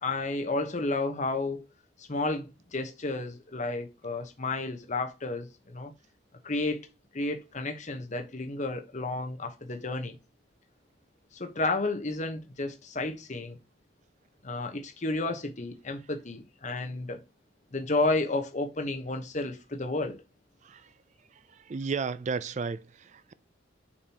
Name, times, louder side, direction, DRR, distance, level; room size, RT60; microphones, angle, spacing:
voice 1, 0.0-1.6 2.0-5.9 6.4-6.9 7.1-10.2 11.3-13.6 14.4-17.2 17.7-20.2, left 2 dB, 40° left, 1.1 m, -32 dB
voice 2, 21.7-23.3, right 5 dB, 35° right, 0.3 m, -33 dB
7.0 x 5.2 x 2.9 m
head